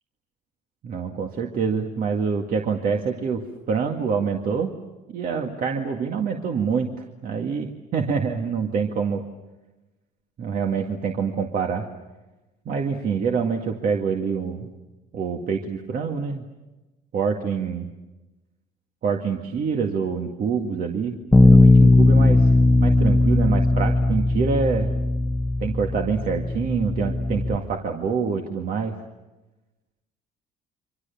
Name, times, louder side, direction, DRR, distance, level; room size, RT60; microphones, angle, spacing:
voice 1, 0.8-4.7 5.1-6.9 7.2-9.3 10.4-11.9 12.7-14.7 15.1-16.4 17.1-17.9 19.0-22.5 22.8-24.9 25.6-28.9, right 6 dB, 55° right, 2 dB, 2.1 m, -26 dB
Bass guitar, 21.3-27.6, left 2 dB, 10° left, 1.0 m, -18 dB
28.5 x 25.0 x 7.2 m, 1.1 s
cardioid pair, 110°, 17 cm